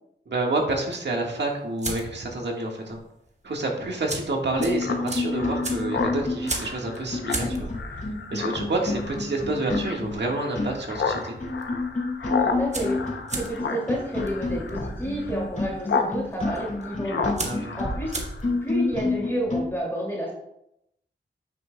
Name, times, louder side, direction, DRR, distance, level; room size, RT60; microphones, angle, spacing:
voice 1, 0.2-3.0 3.4-7.7 8.0-11.4 17.4-17.8, right 2 dB, 65° right, 0 dB, 1.6 m, -28 dB
sound 1, 0.9-2.4 2.7-3.0 3.2-3.3 3.9-10.8 11.1-11.6 11.9-12.0 12.2-18.7, right 2 dB, 40° right, 1.2 m, -36 dB
sound 2, 4.1-4.2 4.5-19.7, left 3 dB, 40° left, 2.3 m, -30 dB
Speech synthesizer, 4.8-16.1 16.4-18.6, left 5 dB, 80° left, 0.7 m, -32 dB
voice 2, 12.4-18.2 18.6-20.3, equal, 10° left, -4 dB, 2.5 m, -31 dB
9.0 x 6.3 x 2.2 m, 0.79 s
wide cardioid pair, 80°, 19 cm